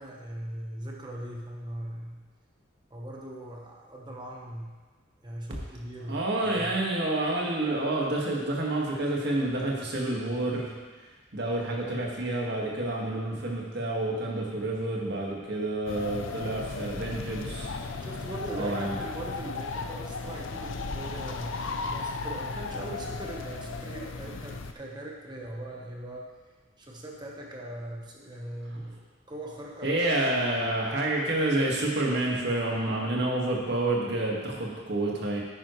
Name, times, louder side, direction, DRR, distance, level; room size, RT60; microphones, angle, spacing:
voice 1, 0.0-2.2 2.9-4.7 5.2-6.2 6.5-6.7 18.0-21.6 21.9-26.3 26.8-30.0, right 1 dB, 20° right, -1 dB, 1.2 m, -40 dB
voice 2, 6.1-10.8 11.3-17.7 18.6-19.0 29.8-35.4, right 2 dB, 55° right, -2 dB, 1.9 m, -28 dB
sound 1, 15.9-24.7, left 3 dB, 80° left, 0.6 m, -35 dB
10.0 x 9.8 x 3.2 m, 1.4 s
head